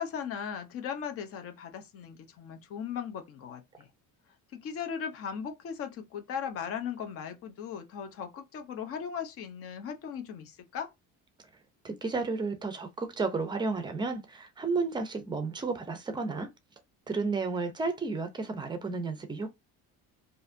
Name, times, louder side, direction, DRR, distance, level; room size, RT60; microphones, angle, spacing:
voice 1, 0.0-3.9 4.5-10.9, left 7 dB, 40° left, 0.9 m, -38 dB
voice 2, 11.8-16.5 17.1-19.5, right 4 dB, 15° right, 0.6 m, -32 dB
4.6 x 2.6 x 2.6 m
cardioid pair, 180°, 34 cm